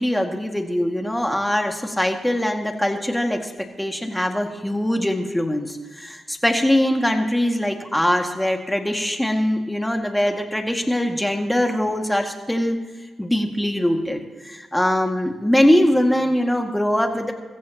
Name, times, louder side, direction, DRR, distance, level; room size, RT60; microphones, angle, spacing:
voice 1, 0.0-3.5 3.8-12.8 13.2-17.3, left 1 dB, 5° left, 3 dB, 2.1 m, -22 dB
22.5 x 15.0 x 3.0 m, 1.3 s
cardioid pair, 70°, 0 cm